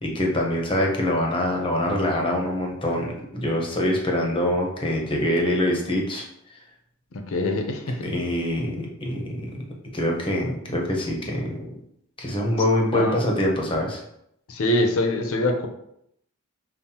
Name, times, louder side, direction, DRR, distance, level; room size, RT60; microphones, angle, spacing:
voice 1, 0.0-6.2 8.0-9.6 9.9-11.7 12.2-14.0, left 1 dB, 25° left, 0 dB, 0.7 m, -24 dB
voice 2, 7.1-8.1 12.9-13.2 14.5-15.7, left 1 dB, 65° left, 5 dB, 0.6 m, -24 dB
5.4 x 2.0 x 2.8 m, 0.75 s
head